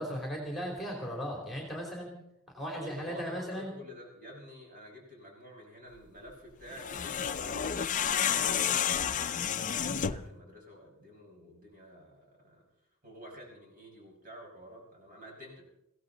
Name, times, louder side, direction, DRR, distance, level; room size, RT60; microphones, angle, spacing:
voice 1, 0.0-2.1 2.5-3.7, equal, ahead, -1 dB, 3.0 m, -37 dB
voice 2, 2.7-12.6 13.0-15.6, equal, 40° right, -1 dB, 5.8 m, -50 dB
sound 1, 6.7-10.3, left 8 dB, 35° left, 0.5 m, -30 dB
22.0 x 16.5 x 4.0 m, 0.80 s
head